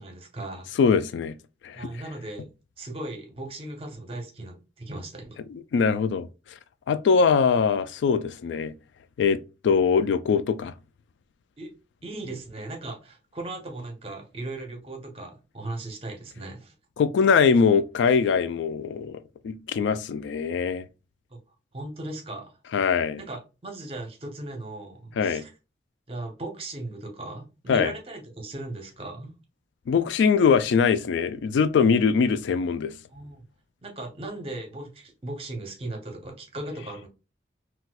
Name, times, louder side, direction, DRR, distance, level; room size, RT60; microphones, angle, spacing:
voice 1, 0.0-0.7 1.7-2.5 2.8-5.4 11.6-11.7 12.0-16.7 21.3-21.4 21.7-22.5 23.2-25.5 26.1-29.4 33.1-33.4 33.8-37.1, right 2 dB, 30° right, 0.7 m, -37 dB
voice 2, 0.8-1.3 1.6-1.9 5.7-6.3 6.9-8.7 9.2-10.7 17.0-19.2 19.4-20.8 22.7-23.2 25.2-25.4 27.7-27.9 29.9-32.9, left 6 dB, 80° left, 0.3 m, -22 dB
4.1 x 2.2 x 2.2 m
head